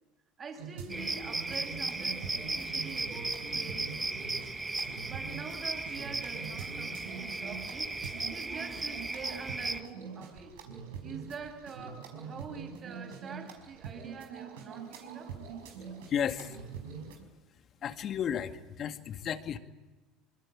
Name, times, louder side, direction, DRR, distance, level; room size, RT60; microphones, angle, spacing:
voice 1, 0.4-4.5 5.0-8.0 8.3-10.6 11.0-15.4, right 5 dB, 40° right, 7.9 m, -46 dB
sound 1, 0.6-17.2, right 6 dB, 85° right, 5.4 m, -44 dB
sound 2, 0.9-9.8, right 3 dB, 15° right, 1.7 m, -36 dB
voice 2, 16.1-16.6 17.8-19.6, left 8 dB, 45° left, 2.2 m, -33 dB
25.5 x 23.0 x 8.7 m
supercardioid pair, 90°, 0 cm